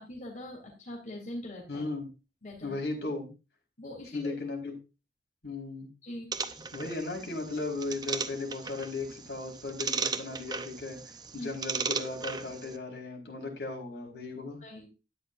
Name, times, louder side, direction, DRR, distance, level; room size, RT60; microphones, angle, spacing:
voice 1, 0.0-1.8 2.4-2.8 3.8-4.3 6.0-6.6 11.3-11.5 14.6-14.9, left 1 dB, 45° left, -1 dB, 3.2 m, -42 dB
voice 2, 1.7-2.1 2.6-3.3 4.1-4.7 5.4-5.9 6.7-14.6, left 3 dB, 70° left, 0 dB, 4.5 m, -36 dB
sound 1, 6.3-12.8, right 5 dB, 25° right, 0.7 m, -37 dB
13.0 x 10.0 x 2.6 m, 0.29 s
head